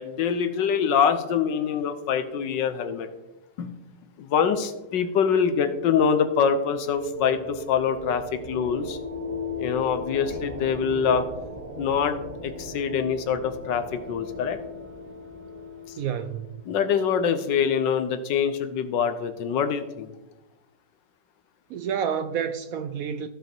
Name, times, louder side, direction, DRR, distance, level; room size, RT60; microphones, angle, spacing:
voice 1, 0.0-3.1 3.6-3.7 4.2-9.0 9.6-11.2 11.8-12.2 12.4-14.6 16.7-20.1, left 7 dB, 90° left, 1.6 m, -24 dB
sound 1, 6.1-16.7, left 2 dB, 30° right, 1.3 m, -37 dB
voice 2, 16.0-16.6 21.7-23.3, right 8 dB, 70° right, 0.8 m, -29 dB
15.0 x 5.2 x 4.5 m
omnidirectional pair, 1.9 m